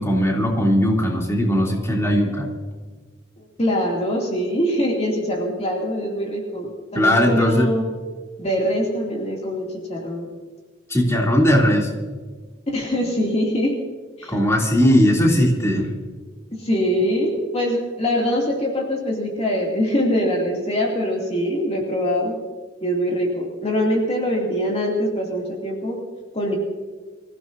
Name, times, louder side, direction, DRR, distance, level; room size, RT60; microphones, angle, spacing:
voice 1, 0.0-2.5 6.9-7.7 10.9-11.9 14.3-15.9, equal, 15° left, -2 dB, 3.0 m, -18 dB
voice 2, 3.4-7.9 8.4-10.3 12.7-13.7 14.2-14.4 16.5-22.3 22.8-26.0 26.3-26.6, equal, 35° left, -2 dB, 2.6 m, -23 dB
25.5 x 16.0 x 2.7 m, 1.5 s
head